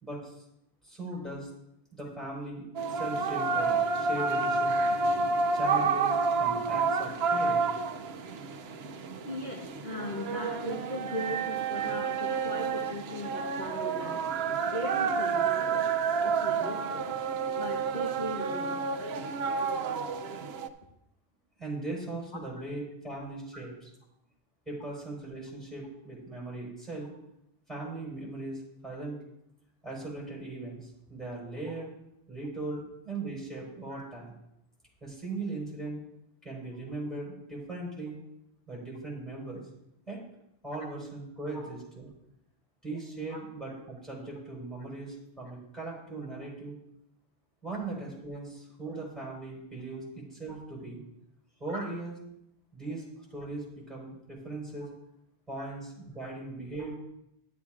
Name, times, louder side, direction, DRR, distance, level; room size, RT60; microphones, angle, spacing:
voice 1, 0.0-0.3 0.8-1.5 1.9-4.8 5.5-7.6 21.6-23.9 24.7-27.1 27.7-29.2 29.8-31.9 32.3-34.3 35.0-36.0 36.4-38.2 38.7-39.6 40.1-40.2 40.6-42.1 42.8-46.7 47.6-51.0 51.6-52.1 52.7-54.9 55.5-56.9, right 2 dB, ahead, -5 dB, 4.6 m, -39 dB
sound 1, 2.8-20.7, right 4 dB, 80° right, 0.9 m, -29 dB
voice 2, 9.3-14.2 14.6-15.9 16.2-17.1 17.6-18.8 22.3-22.4 23.1-23.3 23.5-23.6 33.9-34.0 41.5-41.6 43.3-43.4 50.5-50.6 51.7-51.9 55.6-55.7 56.8-56.9, left 1 dB, 50° left, -2 dB, 1.2 m, -39 dB
13.0 x 11.5 x 2.5 m, 0.82 s
omnidirectional pair, 1.0 m